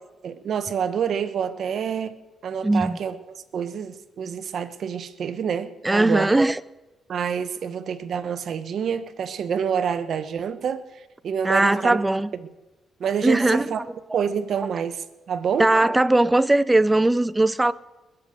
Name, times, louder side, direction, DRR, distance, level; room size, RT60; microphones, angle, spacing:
voice 1, 0.2-2.1 2.4-6.4 7.1-12.0 13.0-13.8 14.1-15.7, right 7 dB, 60° right, 1.2 m, -27 dB
voice 2, 2.6-3.0 5.8-6.6 11.4-12.3 13.2-13.7 15.6-17.7, right 2 dB, 15° right, 0.6 m, -19 dB
21.0 x 7.5 x 8.0 m
cardioid pair, 90°, 0 cm